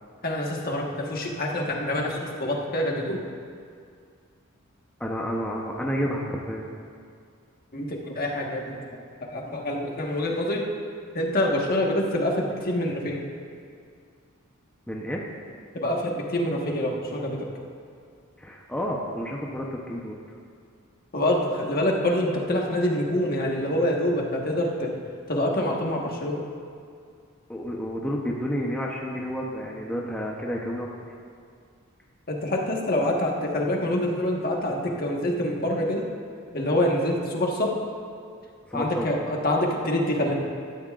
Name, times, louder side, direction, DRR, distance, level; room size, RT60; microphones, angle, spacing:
voice 1, 0.2-3.2 7.7-10.6 11.1-13.2 15.7-17.5 21.1-24.9 25.3-26.4 32.3-36.1 36.5-37.7 38.7-40.3, left 1 dB, 45° left, -1 dB, 1.4 m, -26 dB
voice 2, 5.0-6.6 14.9-15.2 18.4-20.1 27.5-30.9 38.7-39.3, equal, 5° left, -3 dB, 0.8 m, -30 dB
16.5 x 12.5 x 2.5 m, 2.3 s
head